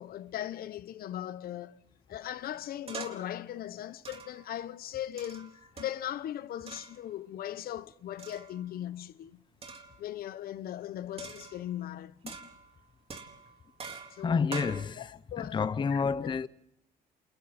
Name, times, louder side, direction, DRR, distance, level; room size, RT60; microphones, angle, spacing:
voice 1, 0.0-1.8 2.1-9.4 10.0-12.1 14.1-14.5 15.0-15.6 15.9-16.0, left 11 dB, 60° left, 1.0 m, -39 dB
sound 1, 2.9-3.4 4.0-4.5 5.2-6.1 6.7-7.0 8.2-8.7 9.6-10.0 11.2-11.8 12.3-12.7 13.1-14.8, right 5 dB, 35° right, 4.0 m, -44 dB
voice 2, 14.2-15.1 15.4-16.5, left 5 dB, 25° left, 0.8 m, -29 dB
29.5 x 28.5 x 4.3 m
cardioid pair, 110°, 17 cm